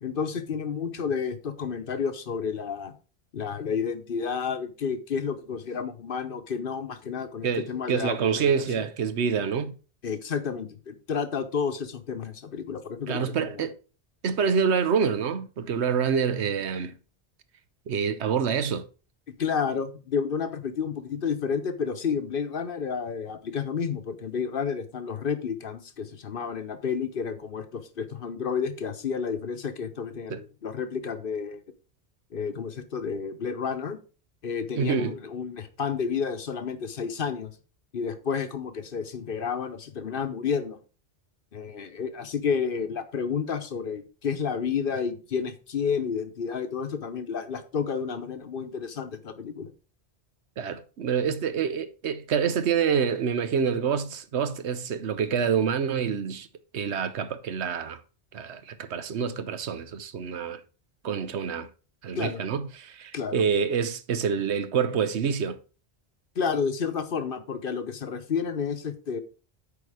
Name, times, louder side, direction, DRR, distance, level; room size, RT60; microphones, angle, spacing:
voice 1, 0.0-2.9 3.3-8.5 8.7-8.8 10.0-13.7 19.4-31.6 32.3-34.0 34.4-37.5 37.9-40.8 41.5-49.7 62.2-62.4 63.1-63.4 66.4-69.2, left 6 dB, 55° left, 1.0 m, -31 dB
voice 2, 7.4-9.8 13.1-13.7 14.2-16.9 17.9-18.9 30.3-30.4 34.8-35.1 50.6-56.5 56.7-58.0 58.3-60.6 61.0-61.7 62.0-65.6, right 6 dB, 80° right, 1.1 m, -27 dB
8.5 x 4.8 x 4.9 m
omnidirectional pair, 1.1 m